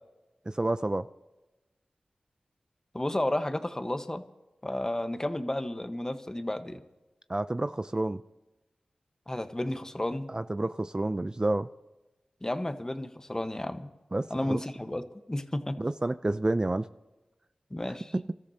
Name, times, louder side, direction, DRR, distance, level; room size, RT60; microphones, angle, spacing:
voice 1, 0.5-1.1 7.3-8.2 10.3-11.7 14.1-14.6 15.8-16.9 18.1-18.3, right 2 dB, 30° right, 11 dB, 0.5 m, -29 dB
voice 2, 2.9-4.2 4.6-6.8 9.3-10.3 12.4-13.9 14.3-15.0 15.3-15.8 17.7-18.1, left 1 dB, 20° left, 8 dB, 1.2 m, -32 dB
27.5 x 13.5 x 2.9 m, 1.0 s
cardioid pair, 40°, 3 cm